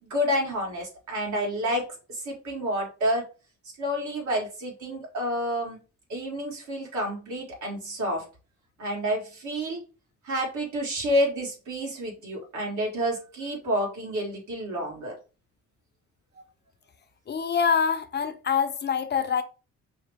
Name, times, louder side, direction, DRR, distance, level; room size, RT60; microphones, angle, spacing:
voice 1, 0.0-3.3 3.8-5.8 6.1-8.2 8.8-9.8 10.2-15.1, equal, 75° right, 1.8 m, -29 dB
voice 2, 17.3-19.4, left 6 dB, 35° left, 0.5 m, -25 dB
5.4 x 2.1 x 3.4 m
cardioid pair, 90°, 30 cm